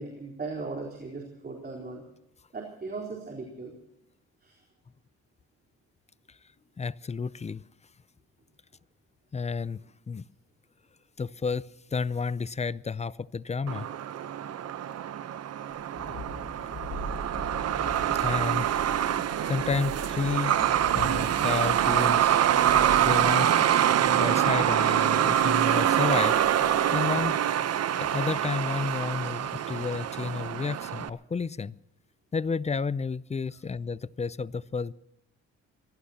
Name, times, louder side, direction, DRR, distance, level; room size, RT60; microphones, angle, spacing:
voice 1, 0.0-2.0 2.5-3.7 4.4-4.6, right 3 dB, 30° right, -1 dB, 4.1 m, -37 dB
voice 2, 6.8-7.6 9.3-9.8 10.1-10.2 11.2-13.9 17.9-18.8 19.4-20.6 20.9-22.6 23.0-23.7 24.0-26.4 26.9-27.4 28.0-31.7 32.3-34.9, left 5 dB, 20° left, 19 dB, 0.5 m, -31 dB
Truck, 13.7-31.1, right 10 dB, 55° right, 0.9 m, -25 dB
Thunderstorm, 15.7-27.3, left 1 dB, 40° left, 7.2 m, -42 dB
24.5 x 17.5 x 2.9 m, 0.82 s
cardioid pair, 90°, 30 cm